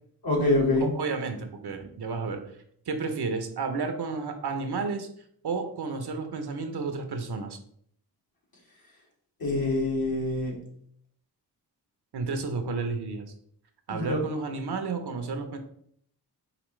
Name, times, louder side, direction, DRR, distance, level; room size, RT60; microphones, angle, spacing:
voice 1, 0.2-0.9 9.4-10.6 13.9-14.2, left 2 dB, 55° left, -2 dB, 1.9 m, -25 dB
voice 2, 0.8-2.4 2.9-5.1 5.4-7.6 12.1-13.3 13.9-15.6, right 4 dB, 65° right, 6 dB, 0.8 m, -31 dB
5.0 x 2.9 x 3.2 m, 0.66 s
cardioid pair, 50°, 42 cm